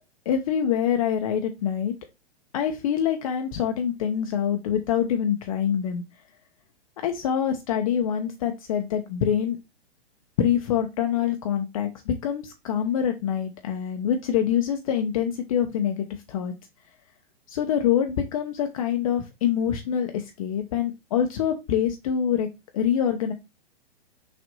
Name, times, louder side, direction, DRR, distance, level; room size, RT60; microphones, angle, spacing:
voice 1, 0.3-1.9 2.5-6.0 7.0-9.6 10.4-16.5 17.5-22.5 22.7-23.3, left 9 dB, 35° left, 5 dB, 0.5 m, -25 dB
6.2 x 2.5 x 2.6 m, 0.23 s
figure-of-eight pair, 110°, 33 cm